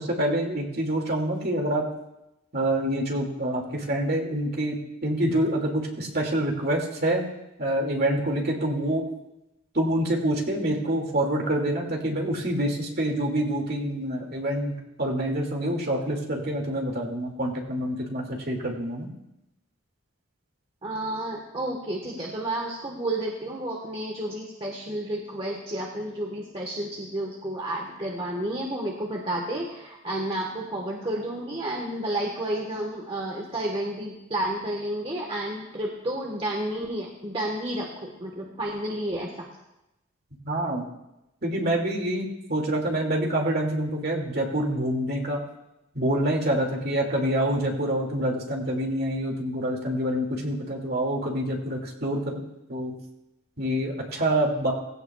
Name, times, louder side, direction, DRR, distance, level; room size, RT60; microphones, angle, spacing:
voice 1, 0.0-1.9 2.5-7.3 7.6-9.0 9.7-19.1 40.4-40.8 41.4-45.4 45.9-52.4 52.7-52.9 53.6-54.7, right 1 dB, 50° right, 1 dB, 2.4 m, -26 dB
voice 2, 20.8-39.5, right 1 dB, 25° right, -1 dB, 1.4 m, -31 dB
18.5 x 16.0 x 2.4 m, 0.91 s
head